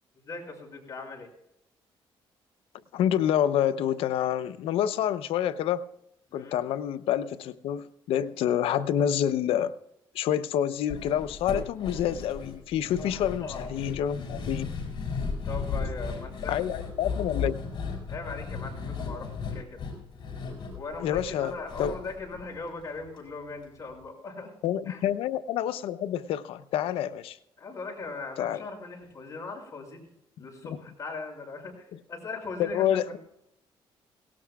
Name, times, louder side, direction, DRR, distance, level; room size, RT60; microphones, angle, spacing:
voice 1, 0.2-1.3 6.3-6.6 13.0-13.7 15.4-16.6 18.1-19.8 20.7-24.5 24.8-25.0 27.6-30.1 30.4-33.2, left 3 dB, 35° left, 0 dB, 5.8 m, -39 dB
voice 2, 2.9-5.8 6.3-9.7 10.1-14.7 16.5-17.6 21.0-21.9 24.6-27.4 28.4-28.7 30.6-30.8 32.6-33.2, left 10 dB, 85° left, 13 dB, 0.7 m, -28 dB
sound 1, 10.9-23.2 23.5-23.6 23.9-24.0, left 5 dB, 55° left, 6.4 m, -36 dB
18.5 x 18.0 x 2.4 m, 0.81 s
cardioid pair, 115°, 9 cm